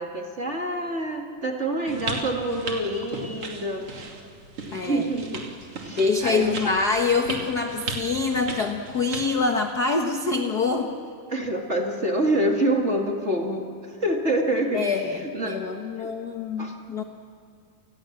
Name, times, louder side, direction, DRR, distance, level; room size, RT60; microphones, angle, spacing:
voice 1, 0.0-3.9 4.9-5.4 5.8-6.5 11.3-13.7 14.0-14.9 15.2-15.6 15.9-16.1 16.6-16.7, right 1 dB, 25° right, 1 dB, 2.1 m, -26 dB
sound 1, 1.9-9.4, right 3 dB, 45° right, 3.5 m, -36 dB
voice 2, 4.7-5.0 6.0-10.9 14.7-17.0, left 4 dB, 50° left, 4 dB, 1.2 m, -25 dB
29.5 x 20.5 x 7.4 m, 2.3 s
omnidirectional pair, 3.6 m